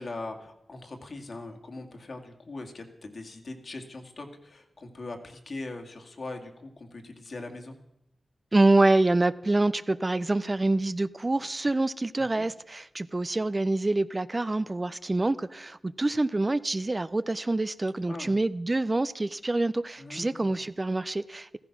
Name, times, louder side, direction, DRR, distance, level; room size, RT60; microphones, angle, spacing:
voice 1, 0.0-7.8 12.2-12.5 18.1-18.4 20.0-20.5, left 2 dB, 60° left, 2.3 m, -41 dB
voice 2, 8.5-21.6, right 2 dB, 30° right, 0.5 m, -26 dB
15.0 x 15.0 x 6.0 m
wide cardioid pair, 80°, 0 cm